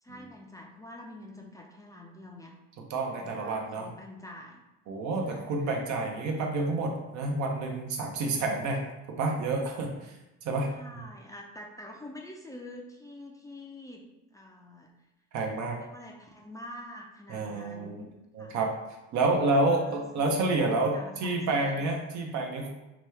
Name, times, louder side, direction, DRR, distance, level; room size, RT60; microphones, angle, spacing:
voice 1, 0.0-2.5 3.1-4.6 5.2-5.8 10.7-14.0 14.3-14.9 15.7-18.1 18.4-18.6 19.7-20.4 20.8-21.8, left 1 dB, 10° left, 0 dB, 0.4 m, -46 dB
voice 2, 2.8-3.9 4.9-8.8 9.1-10.1 10.4-10.7 15.3-15.8 17.3-17.9 18.3-18.7 19.1-22.7, right 2 dB, 65° right, 2 dB, 0.7 m, -29 dB
2.9 x 2.2 x 3.2 m, 0.97 s
supercardioid pair, 80°, 30 cm